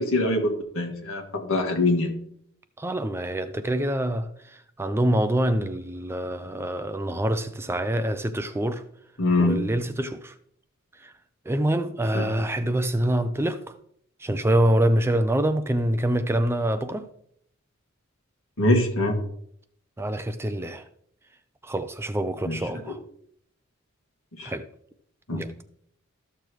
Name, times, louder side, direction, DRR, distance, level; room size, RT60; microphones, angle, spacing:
voice 1, 0.0-2.1 9.2-9.6 12.1-12.3 18.6-19.2 22.4-22.6 22.8-22.9 24.4-24.5 25.3-25.4, left 2 dB, 65° left, 1.9 m, -23 dB
voice 2, 2.8-8.8 9.4-10.3 11.0-11.1 11.5-13.7 14.2-17.1 20.0-20.8 21.6-23.0 24.4-24.6 25.3-25.6, right 1 dB, 10° right, 0.4 m, -25 dB
13.5 x 6.7 x 3.1 m
head